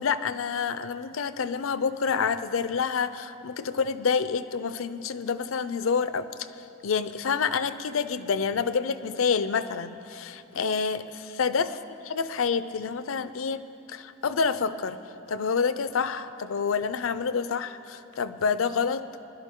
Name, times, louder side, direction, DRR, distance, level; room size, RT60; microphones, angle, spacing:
voice 1, 0.0-6.5 6.8-11.8 12.0-15.0 15.3-19.3, left 5 dB, 70° left, 13 dB, 0.5 m, -28 dB
20.5 x 12.0 x 3.7 m, 2.8 s
head